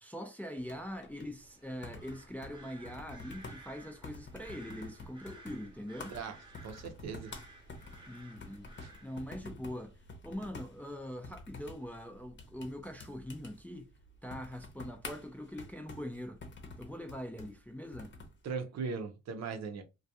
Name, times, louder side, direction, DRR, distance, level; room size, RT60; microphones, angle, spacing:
voice 1, 0.0-6.2 8.1-8.7 9.0-10.0 10.2-13.9 14.2-16.4 16.8-18.1, equal, 5° left, 0.4 m, -43 dB
sound 1, 0.6-18.4, left 3 dB, 40° left, 0.8 m, -50 dB
sound 2, 1.4-9.2, right 2 dB, 15° right, 0.8 m, -56 dB
voice 2, 6.1-7.3 8.8-8.9 18.4-19.8, right 5 dB, 60° right, 0.7 m, -39 dB
2.2 x 2.2 x 2.8 m
cardioid pair, 90°, 30 cm